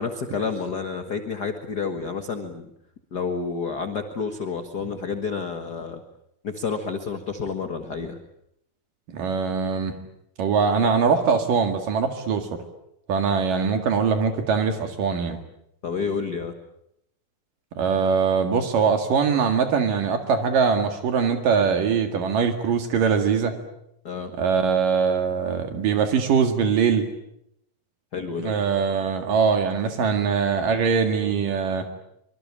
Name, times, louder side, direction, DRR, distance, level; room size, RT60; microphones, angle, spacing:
voice 1, 0.0-2.7 3.1-6.0 6.4-8.2 15.8-16.5 24.0-24.3 28.1-28.5, left 5 dB, 45° left, 7 dB, 1.3 m, -29 dB
voice 2, 9.1-9.9 10.4-12.5 13.1-15.4 17.8-23.6 24.4-27.1 28.4-31.9, right 6 dB, 70° right, 7 dB, 3.6 m, -22 dB
25.0 x 24.0 x 8.7 m, 0.79 s
omnidirectional pair, 4.0 m